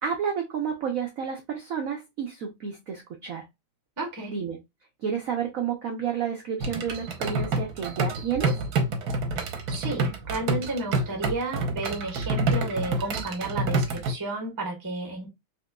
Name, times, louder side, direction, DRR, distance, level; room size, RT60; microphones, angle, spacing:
voice 1, 0.0-3.4 4.3-4.6 5.0-8.6, right 7 dB, 80° right, 0.7 m, -30 dB
voice 2, 4.0-4.3 9.7-15.3, right 3 dB, 25° right, 0.4 m, -32 dB
sound 1, 6.6-14.1, right 2 dB, 60° right, 1.1 m, -28 dB
4.1 x 2.9 x 2.2 m
omnidirectional pair, 2.3 m